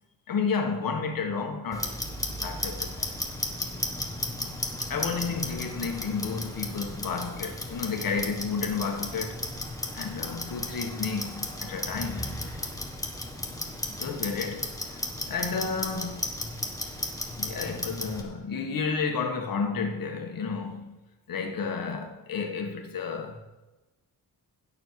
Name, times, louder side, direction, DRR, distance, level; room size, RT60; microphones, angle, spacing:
voice 1, 0.3-1.9 2.4-3.2 4.9-9.4 9.9-12.4 14.0-16.2 17.4-21.0 21.3-23.4, left 5 dB, 70° left, 1.7 m, -31 dB
Clock, 1.7-18.2, left 1 dB, 10° left, 1.6 m, -34 dB
16.5 x 6.9 x 4.8 m
cardioid pair, 105°, 36 cm